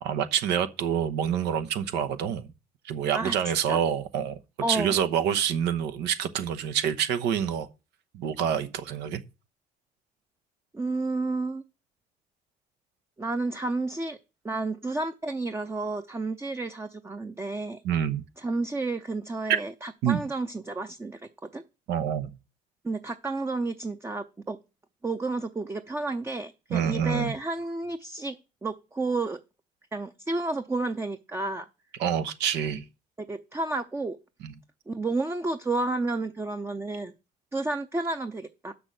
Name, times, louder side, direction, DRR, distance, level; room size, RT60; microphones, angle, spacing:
voice 1, 0.0-2.5 2.8-4.4 4.7-7.7 8.1-9.2 17.8-18.2 20.0-20.2 21.9-22.3 26.7-27.3 32.0-32.8 34.4-34.5, right 8 dB, 85° right, 1.0 m, -27 dB
voice 2, 4.6-4.9 10.7-11.6 13.2-14.2 14.4-17.8 18.4-21.6 22.8-24.6 25.0-28.4 28.6-29.4 29.9-31.7 33.2-34.2 34.9-37.1 37.5-38.7, right 2 dB, 15° right, 0.6 m, -31 dB
6.8 x 6.2 x 7.5 m
cardioid pair, 110°, 17 cm